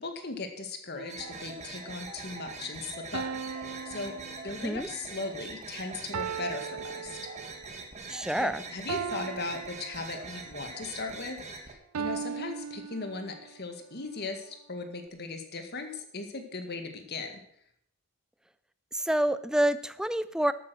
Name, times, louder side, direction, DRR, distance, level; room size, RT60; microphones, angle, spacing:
voice 1, 0.0-4.1 4.4-7.3 8.4-17.3, left 3 dB, 45° left, 6 dB, 1.8 m, -38 dB
sound 1, 0.9-1.8 3.1-5.0 6.1-7.8 8.9-10.5 11.9-13.6, right 7 dB, 90° right, 0.5 m, -38 dB
sound 2, 1.1-11.7, right 3 dB, 30° right, 1.6 m, -43 dB
voice 2, 4.6-4.9 8.1-8.6 18.9-20.5, right 1 dB, 5° right, 14 dB, 0.4 m, -27 dB
12.0 x 9.1 x 6.3 m, 0.71 s
head